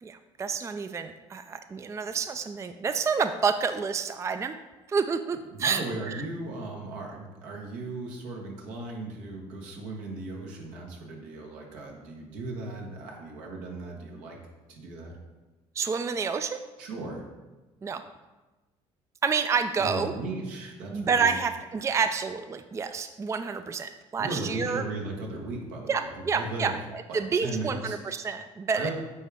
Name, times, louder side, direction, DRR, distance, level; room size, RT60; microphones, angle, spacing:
voice 1, 0.0-4.5 4.9-5.8 6.1-6.2 15.8-16.6 17.8-18.0 19.2-20.1 20.9-24.8 25.9-28.9, right 5 dB, 20° right, 9 dB, 0.3 m, -29 dB
voice 2, 5.5-14.4 14.7-15.1 16.8-17.3 19.8-21.4 24.2-26.7 27.1-28.0 28.7-28.9, right 2 dB, 85° right, 0 dB, 1.4 m, -37 dB
9.3 x 3.6 x 3.5 m, 1.2 s
supercardioid pair, 80°, 13 cm